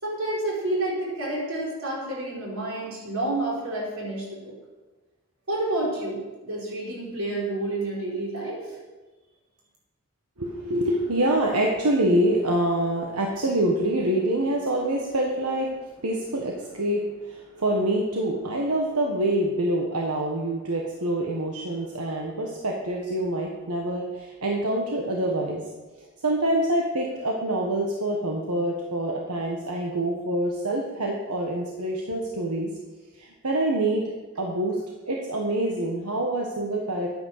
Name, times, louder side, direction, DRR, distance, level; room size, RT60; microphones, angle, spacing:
voice 1, 0.0-4.5 5.5-8.6, right 2 dB, 65° right, -4 dB, 4.9 m, -29 dB
voice 2, 10.4-15.7 16.0-25.6 26.2-32.7 33.2-34.8 35.0-37.1, right 1 dB, 90° right, 0 dB, 1.5 m, -26 dB
11.5 x 9.5 x 6.7 m, 1.2 s
head